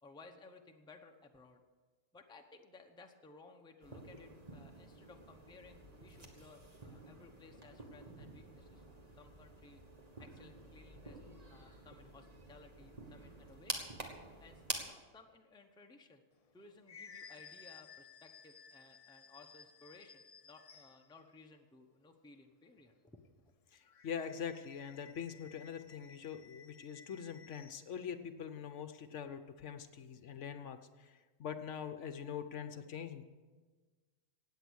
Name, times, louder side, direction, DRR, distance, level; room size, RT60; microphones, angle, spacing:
voice 1, 0.0-1.6 2.1-8.8 9.2-9.8 10.2-11.2 11.5-13.9 14.4-16.2 16.5-23.2, left 3 dB, 5° left, 4 dB, 0.7 m, -59 dB
sound 1, 3.8-14.8, right 2 dB, 30° right, 1.6 m, -48 dB
sound 2, 16.4-21.1 23.9-27.9, left 6 dB, 45° left, 0.5 m, -57 dB
voice 2, 23.7-33.2, left 7 dB, 65° left, 9 dB, 1.0 m, -44 dB
16.5 x 8.8 x 6.3 m, 1.4 s
omnidirectional pair, 1.4 m